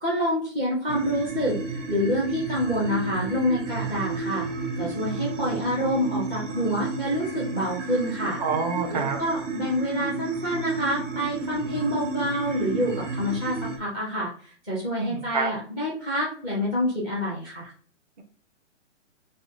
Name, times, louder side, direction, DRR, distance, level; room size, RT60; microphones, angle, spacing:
voice 1, 0.0-4.5 4.8-8.4 8.9-14.3 14.7-17.7, equal, 10° right, -6 dB, 0.5 m, -27 dB
sound 1, 0.9-13.8, right 4 dB, 75° right, 1.2 m, -32 dB
voice 2, 8.4-9.2 14.9-15.5, right 5 dB, 35° right, 3 dB, 1.0 m, -27 dB
6.4 x 2.3 x 2.7 m, 0.44 s
hypercardioid pair, 160°, 37 cm